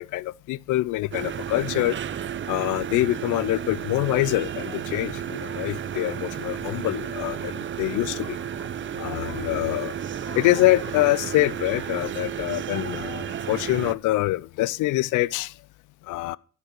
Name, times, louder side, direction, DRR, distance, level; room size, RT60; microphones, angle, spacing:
voice 1, 0.0-2.0 2.5-8.7 9.0-9.9 10.3-15.5 16.1-16.4, left 17 dB, 85° left, 0.4 m, -25 dB
sound 1, 1.1-13.9, right 9 dB, 40° right, 0.6 m, -32 dB
11.5 x 5.5 x 5.9 m
cardioid pair, 90°, 30 cm